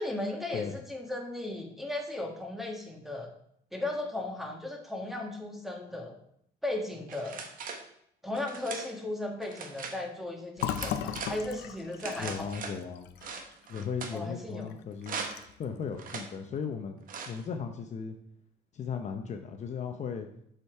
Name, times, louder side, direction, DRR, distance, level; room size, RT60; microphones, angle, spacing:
voice 1, 0.0-3.3 3.7-6.1 6.6-7.4 8.2-12.5 14.1-14.7, left 2 dB, ahead, 2 dB, 1.4 m, -36 dB
sound 1, 7.1-7.8 8.3-8.9 9.4-10.0 10.6-11.4 12.0-12.8 13.2-14.2 15.0-15.5 16.0-16.3 17.1-17.4, right 5 dB, 55° right, 1.1 m, -40 dB
Fill (with liquid), 10.6-14.2 14.6-14.7 15.0-15.6, left 10 dB, 85° left, 0.6 m, -37 dB
voice 2, 12.2-13.1 13.7-15.2 15.6-17.0 17.3-18.2 18.7-20.3, left 6 dB, 45° left, 5 dB, 0.7 m, -36 dB
6.9 x 5.1 x 4.6 m, 0.70 s
cardioid pair, 110°, 17 cm